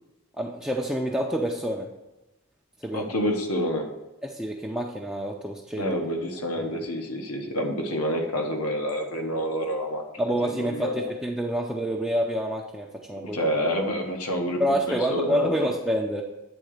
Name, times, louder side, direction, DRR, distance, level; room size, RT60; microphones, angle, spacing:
voice 1, 0.4-1.9 2.8-3.1 4.2-6.0 6.6-6.8 10.2-13.4 14.6-16.2, equal, 5° right, -2 dB, 0.5 m, -28 dB
voice 2, 2.9-3.9 5.8-11.1 13.3-14.6 14.9-15.7, equal, 90° left, 3 dB, 1.2 m, -28 dB
8.9 x 3.8 x 6.4 m, 0.99 s
head